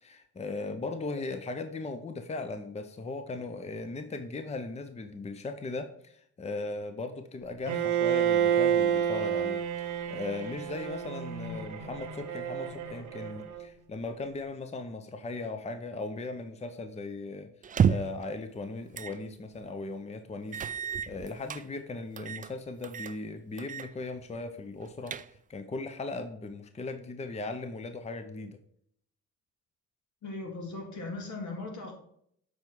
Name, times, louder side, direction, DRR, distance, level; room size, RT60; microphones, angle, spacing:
voice 1, 0.0-17.5 17.8-28.6, left 3 dB, 20° left, 8 dB, 0.7 m, -38 dB
Bowed string instrument, 7.7-13.6, right 9 dB, 75° right, 1.0 m, -29 dB
sound 1, 17.6-18.2 18.9-19.2 19.6-19.7 20.5-21.6 22.2-22.5 22.8-23.2 23.6-23.9 24.2-24.3 24.8-25.6, right 7 dB, 30° right, 0.3 m, -30 dB
voice 2, 30.2-31.9, left 3 dB, 70° left, 1 dB, 2.3 m, -38 dB
7.3 x 4.7 x 4.5 m, 0.69 s
cardioid pair, 90°, 30 cm